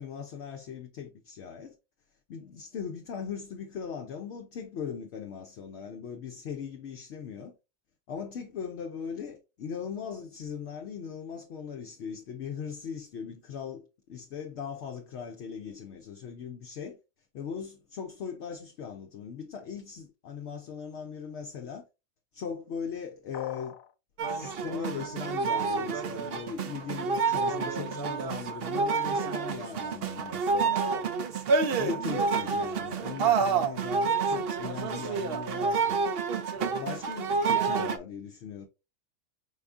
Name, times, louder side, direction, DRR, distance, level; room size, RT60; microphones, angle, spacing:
voice 1, 0.0-1.8 2.3-7.5 8.1-17.0 17.3-21.9 22.3-23.8 24.2-36.0 36.6-38.7, left 7 dB, 65° left, 0.8 m, -39 dB
sound 1, 23.3-23.9, left 9 dB, 85° left, 1.0 m, -42 dB
sound 2, 24.2-38.0, right 5 dB, 60° right, 0.6 m, -28 dB
4.9 x 3.4 x 2.4 m
omnidirectional pair, 1.4 m